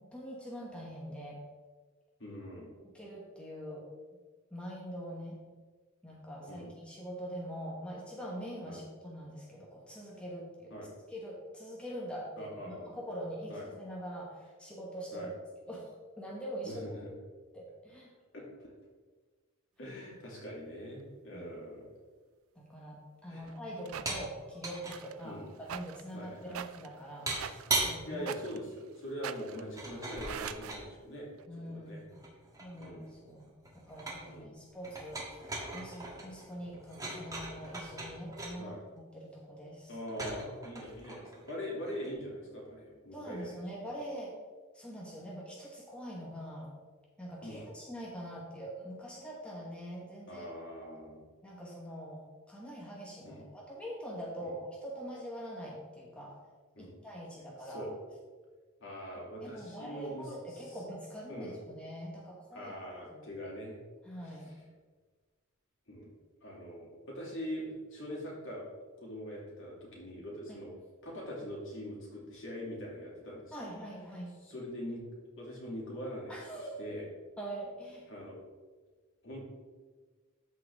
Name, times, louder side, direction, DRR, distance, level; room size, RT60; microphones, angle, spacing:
voice 1, 0.0-1.4 2.8-3.8 4.5-5.4 6.0-10.7 11.1-15.3 15.7-16.7 17.5-18.1 21.3-21.5 22.5-28.3 31.5-32.3 32.6-35.4 35.7-39.9 43.1-44.3 44.7-46.7 47.2-50.4 50.8-50.9 51.4-56.4 56.8-57.8 59.4-62.7 63.1-63.5 64.0-64.5 70.5-70.6 73.5-74.3 76.3-76.8 77.4-78.0, equal, 5° left, -4 dB, 1.2 m, -44 dB
voice 2, 2.2-2.8 6.5-6.7 8.6-8.9 10.7-11.0 12.4-12.9 13.5-13.7 15.1-15.3 16.6-17.1 18.3-18.7 19.8-21.9 23.2-23.5 25.2-25.5 26.1-26.6 28.1-31.3 31.5-32.0 32.8-33.1 34.3-34.6 38.5-38.8 39.9-43.7 47.4-47.7 50.3-51.2 53.2-53.4 54.4-54.6 56.7-57.0 57.6-58.0 58.8-60.8 61.3-61.6 62.5-63.8 64.2-64.6 65.9-66.1 66.4-68.7 69.0-70.7 71.0-73.7 74.4-75.0 75.4-77.1 78.1-78.4 79.2-79.4, equal, 60° left, -4 dB, 2.8 m, -43 dB
sound 1, 23.5-24.1 24.9-30.8 31.4-31.5, right 9 dB, 75° right, 0.4 m, -44 dB
sound 2, 24.1-24.3 24.6-25.0 27.3-28.0 29.8-30.9 31.9-33.1 33.4-34.3 34.8-38.5 40.1-42.1, right 2 dB, 15° right, 1.5 m, -38 dB
13.0 x 4.5 x 3.6 m, 1.4 s
head